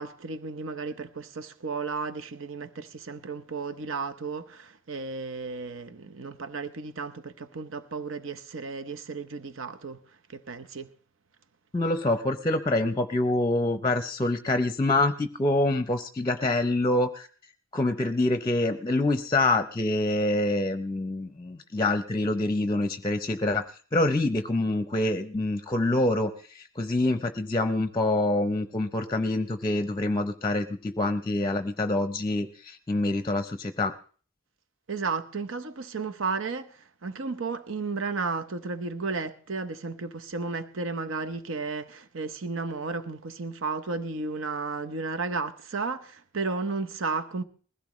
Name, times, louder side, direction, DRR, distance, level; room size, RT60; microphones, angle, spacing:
voice 1, 0.0-10.0 10.3-10.9 34.9-47.4, right 4 dB, 70° right, 0.8 m, -33 dB
voice 2, 11.7-17.3 17.7-33.9, left 2 dB, 20° left, 0.7 m, -26 dB
21.0 x 16.0 x 3.1 m
head